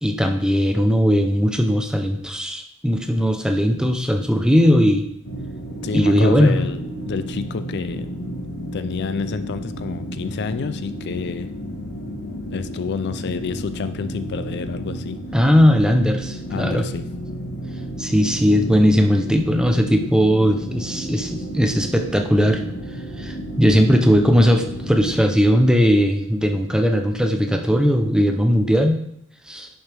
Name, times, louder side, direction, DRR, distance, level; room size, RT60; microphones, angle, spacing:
voice 1, 0.0-5.1 5.9-6.6 15.3-16.9 18.0-22.6 23.2-29.0 29.5-29.7, equal, 5° right, 4 dB, 0.7 m, -18 dB
sound 1, 5.2-25.2, equal, 80° left, 1.5 m, -32 dB
voice 2, 5.8-8.1 8.7-11.5 12.5-15.2 16.5-17.0, left 5 dB, 50° left, 12 dB, 0.4 m, -29 dB
10.5 x 6.8 x 3.4 m, 0.74 s
head